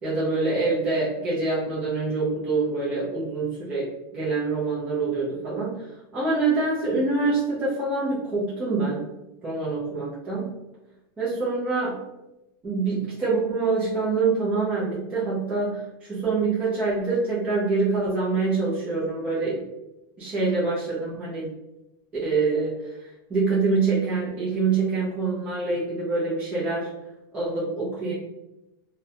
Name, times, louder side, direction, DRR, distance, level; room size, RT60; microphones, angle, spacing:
voice 1, 0.0-3.9 4.1-5.8 6.1-9.0 9.4-10.5 11.2-12.0 12.6-15.8 16.1-19.6 20.2-21.5 22.2-22.8 23.3-26.9 27.3-28.1, right 3 dB, 10° right, -9 dB, 0.4 m, -25 dB
2.3 x 2.0 x 2.7 m, 0.92 s
supercardioid pair, 180°, 12 cm